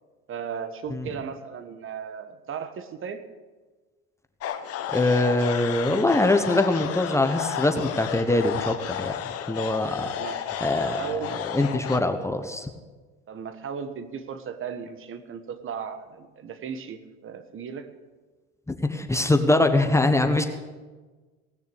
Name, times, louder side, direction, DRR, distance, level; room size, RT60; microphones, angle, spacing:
voice 1, 0.3-3.2 10.0-10.5 10.8-11.4 13.3-17.9, right 7 dB, 40° right, 11 dB, 1.4 m, -36 dB
sound 1, 4.4-12.0, left 10 dB, 45° left, 1.1 m, -32 dB
voice 2, 4.9-10.1 10.6-12.7 18.7-20.5, left 2 dB, 10° left, 6 dB, 1.2 m, -23 dB
18.5 x 6.6 x 8.6 m, 1.3 s
supercardioid pair, 90°, 32 cm